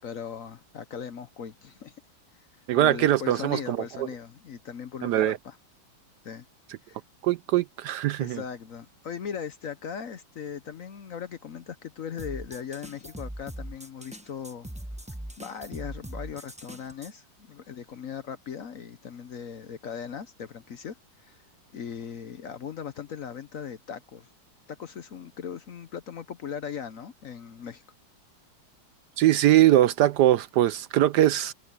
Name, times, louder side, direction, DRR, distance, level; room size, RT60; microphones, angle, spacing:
voice 1, 0.0-1.9 2.7-5.6 6.2-6.4 6.8-7.0 8.2-14.7 15.4-20.9 21.2-21.4 21.7-24.3 24.8-27.8, left 7 dB, 55° left, 1.0 m, -38 dB
voice 2, 2.7-4.1 5.0-5.4 7.2-8.4 29.2-31.5, right 13 dB, 70° right, 1.0 m, -22 dB
sound 1, 12.2-17.1, right 1 dB, 5° right, 0.7 m, -40 dB
omnidirectional pair, 2.0 m